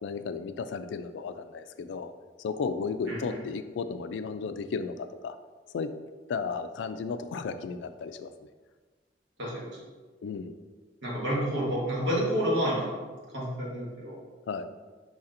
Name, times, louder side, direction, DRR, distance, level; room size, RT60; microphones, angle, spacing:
voice 1, 0.0-2.1 2.4-5.4 5.7-5.9 6.3-8.5 10.2-10.6 14.5-14.7, left 5 dB, 90° left, 10 dB, 0.3 m, -34 dB
voice 2, 3.1-3.4 9.4-9.8 11.0-13.0 13.3-14.2, equal, 90° right, -4 dB, 1.4 m, -29 dB
4.9 x 4.1 x 2.5 m, 1.4 s
head